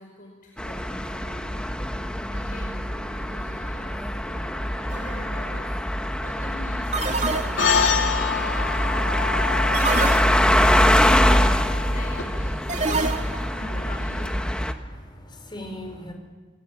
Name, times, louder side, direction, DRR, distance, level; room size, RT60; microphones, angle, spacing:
voice 1, 0.0-1.5 2.3-10.0 10.6-12.8 13.1-14.4, left 1 dB, 45° left, 0 dB, 5.2 m, -44 dB
sound 1, 0.6-14.7, left 1 dB, 5° left, 1.4 m, -24 dB
sound 2, 4.9-5.2 6.9-8.0 9.7-10.8 12.7-13.6, right 3 dB, 40° right, 2.3 m, -27 dB
sound 3, 7.6-12.2, left 6 dB, 85° left, 2.7 m, -27 dB
voice 2, 13.1-14.0 14.8-16.1, left 1 dB, 25° left, 4 dB, 5.0 m, -39 dB
27.5 x 23.0 x 8.8 m, 1.4 s
head